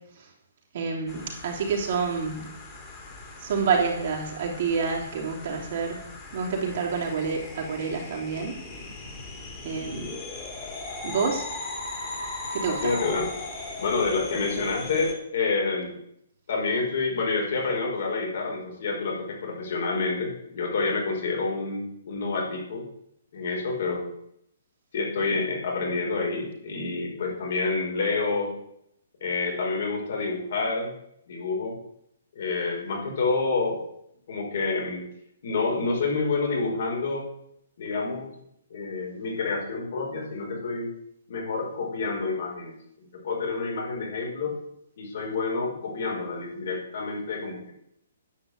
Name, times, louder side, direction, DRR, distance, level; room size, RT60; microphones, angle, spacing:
voice 1, 0.7-2.5 3.4-6.0 6.3-8.5 9.6-10.1 11.0-11.4 12.5-12.8, right 5 dB, 55° right, -2 dB, 3.2 m, -28 dB
sound 1, 1.1-15.1, left 2 dB, 20° left, 3.0 m, -38 dB
voice 2, 12.6-13.3 13.8-16.0 16.5-22.8 23.3-24.1 24.9-28.5 29.2-30.9 31.3-31.8 32.3-33.8 34.3-35.0 35.4-37.3 37.8-38.3 38.7-40.9 41.3-44.5 45.0-47.7, left 4 dB, 60° left, -1 dB, 5.0 m, -28 dB
10.0 x 5.8 x 8.2 m, 0.75 s
hypercardioid pair, 150°, 0 cm